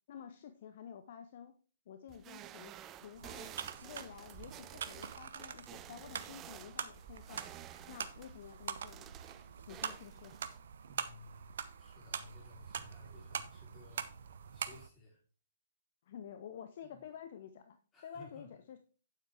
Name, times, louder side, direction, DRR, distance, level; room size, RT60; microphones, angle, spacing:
voice 1, 0.1-1.5 1.9-2.7 3.0-3.6 3.8-7.5 7.9-9.1 9.7-10.4 16.0-17.8 18.0-18.8, left 8 dB, 45° left, 9 dB, 0.7 m, -50 dB
sound 1, 2.1-10.6, right 11 dB, 20° right, 0.5 m, -52 dB
sound 2, 3.2-14.9, right 7 dB, 55° right, 0.8 m, -44 dB
voice 2, 10.9-14.1 14.5-15.2 16.8-17.0 17.9-18.5, left 3 dB, 15° left, -3 dB, 3.7 m, -57 dB
9.1 x 7.8 x 3.5 m, 0.38 s
figure-of-eight pair, 120°, 0 cm